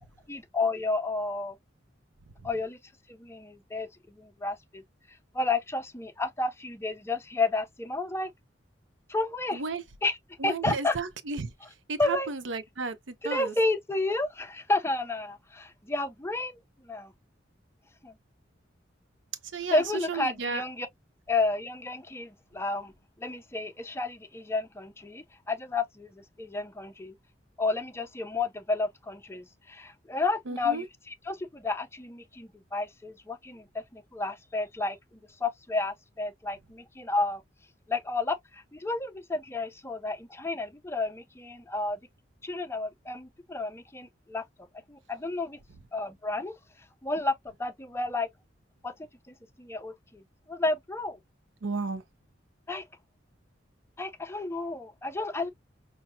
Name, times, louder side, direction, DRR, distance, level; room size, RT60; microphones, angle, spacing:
voice 1, 0.3-1.6 2.4-2.8 3.1-4.8 5.3-8.3 9.1-9.6 10.0-10.2 10.4-11.0 12.0-12.3 13.2-17.1 18.0-18.1 19.7-20.9 21.3-22.9 23.2-27.1 27.6-37.4 37.9-42.0 42.4-44.4 44.9-45.6 45.9-46.5 47.0-47.3 47.6-48.3 48.8-48.9 49.3-50.2 50.5-51.2 52.7-52.8 54.0-55.5, left 3 dB, 15° left, 0.6 m, -31 dB
voice 2, 9.5-9.8 10.4-11.5 11.9-13.5 19.5-20.6 30.5-30.8 51.6-52.0, right 4 dB, 80° right, 0.7 m, -33 dB
5.8 x 2.2 x 2.6 m
head